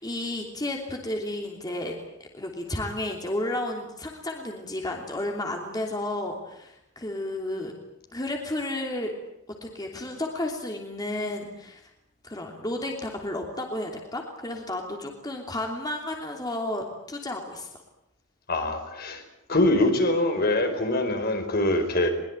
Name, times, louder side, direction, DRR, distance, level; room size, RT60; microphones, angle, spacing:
voice 1, 0.0-1.9 2.2-7.7 8.1-9.1 9.6-11.8 12.2-17.8, left 1 dB, 20° left, 1 dB, 3.0 m, -32 dB
voice 2, 18.5-19.2 19.5-22.1, left 1 dB, 50° left, 6 dB, 4.8 m, -23 dB
22.5 x 21.5 x 9.0 m, 0.82 s
head